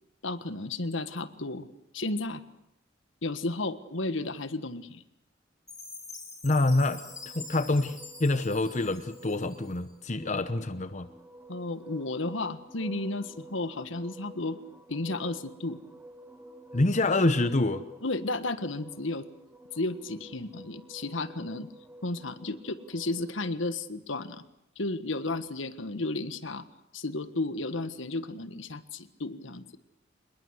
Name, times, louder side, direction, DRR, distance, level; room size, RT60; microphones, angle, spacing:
voice 1, 0.2-1.7 1.9-2.4 3.2-5.0 11.5-14.6 14.9-15.8 18.0-19.3 19.7-21.7 22.0-24.4 24.8-26.6 26.9-29.8, left 2 dB, 70° left, 12 dB, 1.5 m, -33 dB
Chime, 5.7-9.9, left 3 dB, 15° left, 5.6 m, -46 dB
voice 2, 6.4-7.0 7.3-11.1 16.7-17.8, left 2 dB, 35° left, 11 dB, 1.0 m, -26 dB
sound 1, 7.1-23.5, right 1 dB, 10° right, 1.4 m, -50 dB
26.0 x 21.5 x 8.1 m, 0.82 s
head